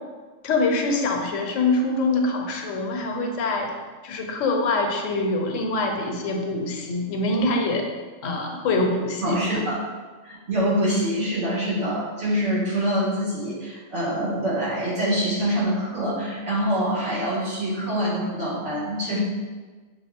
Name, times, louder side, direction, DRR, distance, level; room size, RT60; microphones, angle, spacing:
voice 1, 0.4-3.7 4.0-7.9 8.2-9.4, left 2 dB, 75° left, 2 dB, 1.0 m, -24 dB
voice 2, 9.2-9.8 10.2-19.2, equal, 65° right, -8 dB, 1.7 m, -25 dB
6.2 x 2.4 x 3.5 m, 1.4 s
omnidirectional pair, 1.3 m